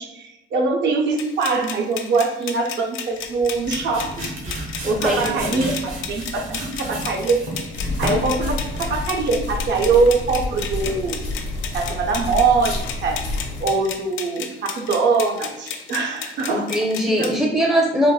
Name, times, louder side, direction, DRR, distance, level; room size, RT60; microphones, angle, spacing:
voice 1, 0.0-7.4 7.8-11.2 11.7-13.2 13.6-16.7 17.2-17.3, right 4 dB, 65° right, 2 dB, 0.5 m, -23 dB
sound 1, 1.2-17.4, left 7 dB, 85° left, 0.4 m, -34 dB
sound 2, 3.3-9.1, right 1 dB, 80° right, 1.0 m, -32 dB
voice 2, 4.8-5.7 16.5-18.1, equal, 5° right, -1 dB, 0.4 m, -21 dB
sound 3, 7.7-13.7, left 2 dB, 70° left, 0.8 m, -29 dB
3.8 x 2.0 x 2.3 m, 0.97 s
cardioid pair, 90°, 20 cm